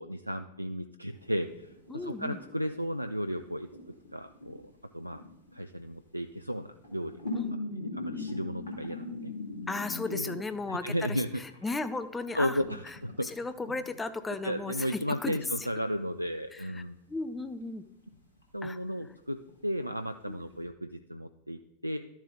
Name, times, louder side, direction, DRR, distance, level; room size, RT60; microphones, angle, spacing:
voice 1, 0.0-3.7 4.1-4.6 4.9-5.2 5.5-7.2 7.9-9.3 10.1-10.4 10.7-11.4 12.4-13.3 14.4-17.0 18.5-19.4 19.6-22.0, equal, 90° right, 9 dB, 0.3 m, -34 dB
belly monologue stereo, 1.1-3.4 3.7-5.7 6.7-11.2 11.5-13.7 14.8-15.1 15.3-15.4 15.8-16.3 16.7-16.8 17.1-17.7 18.1-18.6 18.9-19.0 19.5-19.6 19.8-20.6, left 2 dB, 75° left, 2.2 m, -40 dB
voice 2, 1.9-2.4 7.3-7.8 9.7-15.7 16.5-16.8 17.1-17.8 18.6-18.8 20.3-20.5, left 3 dB, 10° left, 11 dB, 0.6 m, -36 dB
12.0 x 7.2 x 3.8 m, 0.92 s
figure-of-eight pair, 90°, 0 cm